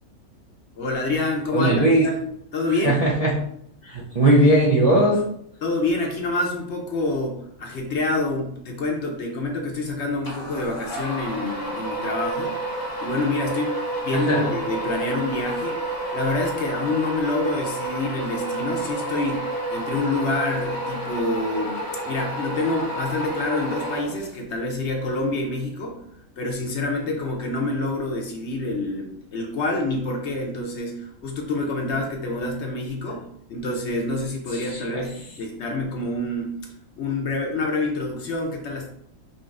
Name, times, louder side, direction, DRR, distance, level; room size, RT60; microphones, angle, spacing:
voice 1, 0.8-3.0 5.6-12.6 13.0-13.7 14.0-15.8 16.1-26.0 26.4-36.6 37.0-38.9, left 2 dB, 60° left, 1 dB, 0.9 m, -27 dB
voice 2, 1.5-2.1 2.8-3.4 3.8-5.2 14.1-14.5 34.7-35.0, right 1 dB, 45° right, -6 dB, 0.5 m, -19 dB
sound 1, 10.2-24.5, right 1 dB, 30° left, 0.4 m, -30 dB
5.2 x 2.9 x 2.5 m, 0.73 s
omnidirectional pair, 1.5 m